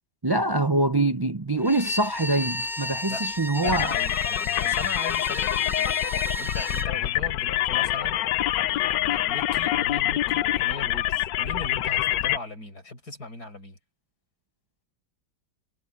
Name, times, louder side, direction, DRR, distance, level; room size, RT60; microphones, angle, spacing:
voice 1, 0.2-3.9, right 2 dB, 40° right, 0.3 m, -24 dB
Bowed string instrument, 1.6-6.9, left 1 dB, ahead, 2.3 m, -33 dB
voice 2, 3.5-13.8, left 2 dB, 60° left, 6.0 m, -39 dB
sound 1, 3.6-12.4, left 14 dB, 85° left, 1.3 m, -26 dB
omnidirectional pair, 1.9 m